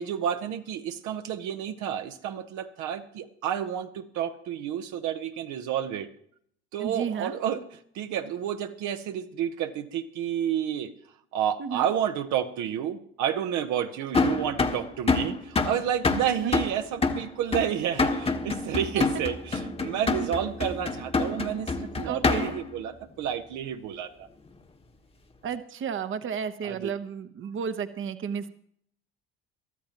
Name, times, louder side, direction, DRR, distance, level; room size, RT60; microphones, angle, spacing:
voice 1, 0.0-6.1 6.7-7.6 7.9-10.9 11.3-24.3 26.6-26.9, right 9 dB, 60° right, 7 dB, 1.0 m, -30 dB
voice 2, 6.8-7.3 11.6-11.9 16.4-16.5 19.0-19.1 22.0-22.5 25.4-28.5, right 7 dB, 40° right, 10 dB, 1.0 m, -32 dB
sound 1, 14.1-22.7, left 3 dB, 20° left, 1.2 m, -27 dB
22.5 x 13.0 x 3.0 m, 0.64 s
supercardioid pair, 85°, 32 cm